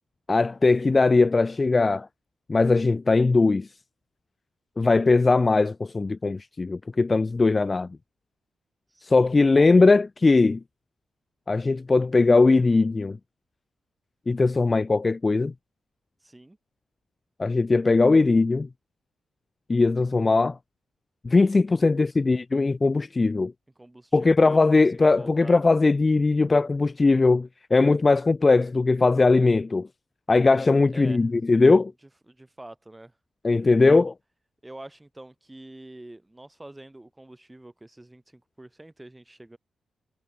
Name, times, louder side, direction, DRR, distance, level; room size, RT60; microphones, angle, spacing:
voice 1, 0.3-2.1 2.5-3.7 4.8-7.9 9.1-10.6 11.5-13.2 14.3-15.5 17.4-18.7 19.7-20.6 21.2-23.5 24.1-29.9 30.3-31.9 33.4-34.1, left 3 dB, 25° left, 0.6 m, -20 dB
voice 2, 8.9-9.9 16.2-16.6 21.8-22.1 23.8-25.6 30.9-31.3 32.3-33.1 33.8-34.1 34.6-39.6, right 1 dB, 10° right, 6.4 m, -45 dB
cardioid pair, 115°, 0 cm